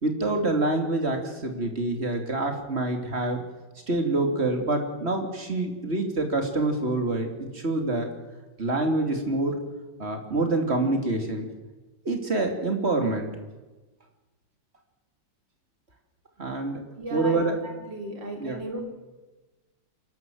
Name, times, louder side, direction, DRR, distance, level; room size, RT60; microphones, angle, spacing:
voice 1, 0.0-3.4 3.9-8.1 8.6-9.6 10.0-11.5 12.0-13.3 16.4-16.8 17.1-17.6 18.4-18.6, right 2 dB, 30° right, 4 dB, 2.9 m, -26 dB
voice 2, 17.0-18.8, right 1 dB, 70° right, 2 dB, 4.3 m, -36 dB
28.0 x 12.0 x 7.8 m, 1.2 s
omnidirectional pair, 2.1 m